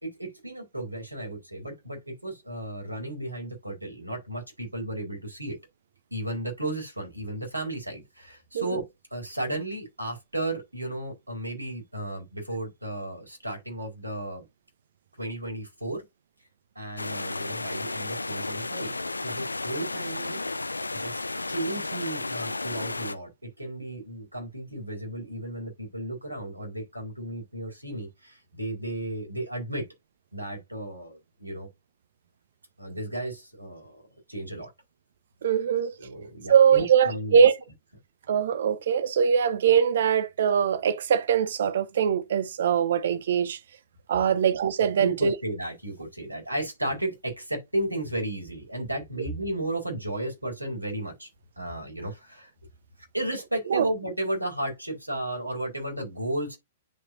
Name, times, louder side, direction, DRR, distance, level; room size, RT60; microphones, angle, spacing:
voice 1, 0.0-5.6 6.1-14.5 15.2-16.0 16.7-18.9 19.2-20.5 20.9-29.9 30.3-31.7 32.8-34.0 34.3-34.7 36.0-37.5 44.2-44.3 45.0-51.3 51.6-52.5 53.1-56.6, right 1 dB, 90° right, 4.8 m, -34 dB
sound 1, 17.0-23.1, left 3 dB, 80° left, 0.5 m, -33 dB
voice 2, 35.4-35.9 36.5-37.5 38.3-43.6 44.1-45.3 53.7-53.8, right 7 dB, 60° right, 1.1 m, -22 dB
10.0 x 5.1 x 2.7 m
figure-of-eight pair, 110°, 0 cm